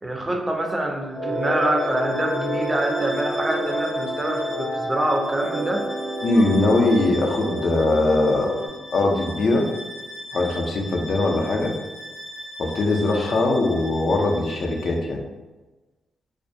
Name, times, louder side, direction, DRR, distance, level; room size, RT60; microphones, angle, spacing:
voice 1, 0.0-5.9, right 1 dB, 20° right, 1 dB, 0.4 m, -25 dB
sound 1, 1.1-8.7, equal, 75° right, 1.2 m, -29 dB
Bowed string instrument, 1.3-15.1, equal, 45° left, 0.8 m, -39 dB
voice 2, 6.2-8.5 8.9-9.7 10.3-11.7 12.6-15.2, left 2 dB, 65° left, 1 dB, 0.4 m, -21 dB
2.4 x 2.1 x 2.6 m, 1.2 s
cardioid pair, 85°, 0 cm